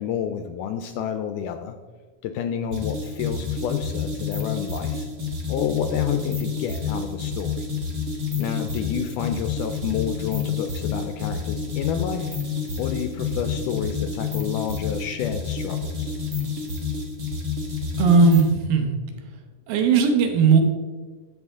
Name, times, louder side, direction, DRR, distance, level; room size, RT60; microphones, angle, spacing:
voice 1, 0.0-1.8 2.2-5.1 5.5-7.7 8.4-12.4 12.8-16.1, left 8 dB, 80° left, 8 dB, 1.9 m, -29 dB
sound 1, 2.7-18.6, left 5 dB, 55° right, 0.9 m, -29 dB
voice 2, 18.0-18.9 19.7-20.6, right 5 dB, 90° right, 5 dB, 2.9 m, -17 dB
14.5 x 5.6 x 3.6 m, 1.4 s
omnidirectional pair, 4.0 m